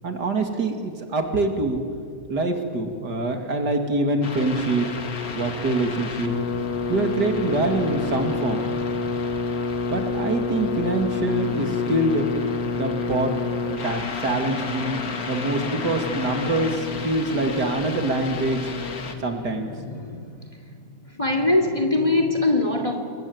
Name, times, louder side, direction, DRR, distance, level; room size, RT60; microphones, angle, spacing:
voice 1, 0.0-1.8 2.3-4.9 5.3-6.4 6.9-8.6 9.9-12.3 12.7-13.3 13.7-15.0 15.3-18.7 19.2-19.7, right 2 dB, 60° right, 5 dB, 2.8 m, -25 dB
sound 1, 4.2-19.2, left 4 dB, 50° left, 2.2 m, -29 dB
voice 2, 19.0-20.8 21.1-23.0, left 2 dB, 15° left, 4 dB, 2.4 m, -24 dB
28.0 x 21.5 x 9.4 m, 2.3 s
omnidirectional pair, 2.1 m